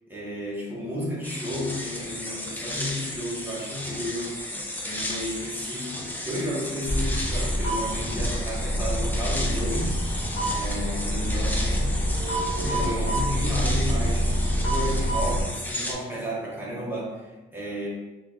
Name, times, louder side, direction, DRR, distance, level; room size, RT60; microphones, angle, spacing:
voice 1, 0.1-10.0 10.5-12.0 12.6-14.3 14.6-17.9, equal, 10° right, -6 dB, 1.1 m, -33 dB
sound 1, 1.2-15.9, left 1 dB, 10° left, 0.4 m, -34 dB
sound 2, 6.9-15.4, equal, 35° left, 1.3 m, -26 dB
3.7 x 2.3 x 3.7 m, 1.1 s
wide cardioid pair, 150°, 20 cm